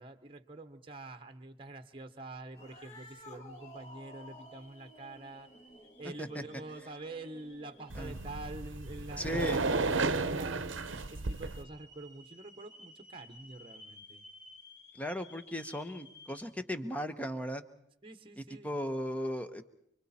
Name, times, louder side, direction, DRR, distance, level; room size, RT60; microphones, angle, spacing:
voice 1, 0.0-5.5 6.0-10.6 11.1-14.2 18.0-18.7, right 2 dB, 25° right, 8 dB, 1.1 m, -46 dB
sound 1, 2.5-16.4, left 2 dB, 60° left, 6.0 m, -58 dB
Cat, 2.5-8.1, left 1 dB, 35° left, 2.2 m, -53 dB
sound 2, 7.9-11.6, right 3 dB, 75° right, 0.9 m, -33 dB
voice 2, 9.2-9.6 15.0-17.6 18.6-19.6, equal, 5° left, 9 dB, 1.0 m, -36 dB
29.5 x 23.0 x 4.3 m, 0.75 s
head